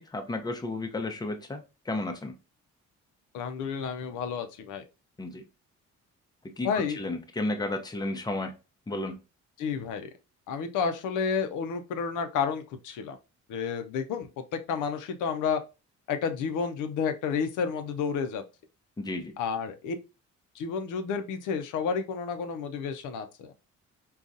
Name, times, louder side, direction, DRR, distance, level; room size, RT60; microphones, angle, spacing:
voice 1, 0.0-2.3 5.2-5.4 6.6-8.5 8.9-9.2 19.0-19.3, left 2 dB, 15° left, 0.6 m, -33 dB
voice 2, 3.3-4.8 6.6-7.0 9.6-10.1 10.5-13.2 13.5-15.6 16.1-18.4 19.4-19.9 20.6-23.6, left 6 dB, 85° left, 0.6 m, -31 dB
3.8 x 2.3 x 2.5 m
cardioid pair, 90°, 30 cm